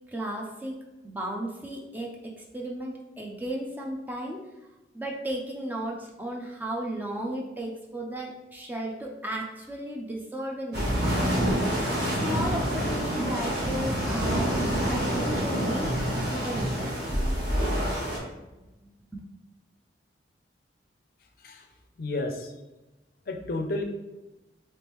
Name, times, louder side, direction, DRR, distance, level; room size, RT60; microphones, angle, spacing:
voice 1, 0.1-0.8 1.0-2.1 2.5-4.5 4.9-11.3 12.2-14.6 14.8-17.2 18.8-19.2, right 1 dB, 10° right, -1 dB, 0.4 m, -35 dB
sound 1, 10.7-18.2, equal, 75° right, 1.3 m, -27 dB
voice 2, 22.0-22.5 23.3-23.8, left 2 dB, 55° left, 4 dB, 0.4 m, -31 dB
3.5 x 3.0 x 3.0 m, 1.0 s
head